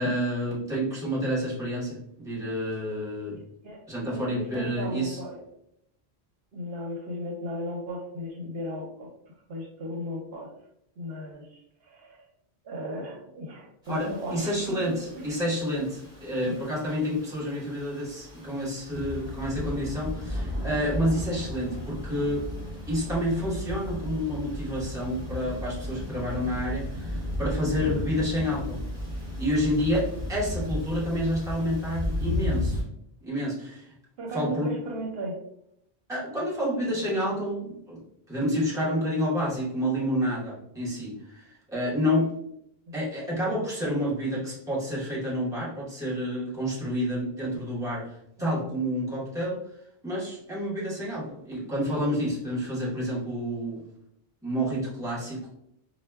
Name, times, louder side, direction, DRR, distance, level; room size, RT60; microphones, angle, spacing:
voice 1, 0.0-3.4 3.9-5.2 13.9-22.5 22.9-28.9 29.4-32.8 33.2-33.9 34.3-34.8 36.1-38.0 38.3-42.3 42.9-49.6 50.0-53.8 54.4-55.4, equal, 5° right, -7 dB, 0.9 m, -29 dB
voice 2, 4.1-5.4 6.5-9.1 9.5-10.5 11.0-12.2 12.6-15.4 16.5-16.6 34.2-35.4 42.9-43.0 48.4-48.8, equal, 70° right, 0 dB, 0.9 m, -36 dB
sound 1, 13.8-32.8, left 1 dB, 25° right, 1.4 m, -34 dB
4.3 x 2.2 x 2.2 m, 0.75 s
omnidirectional pair, 1.1 m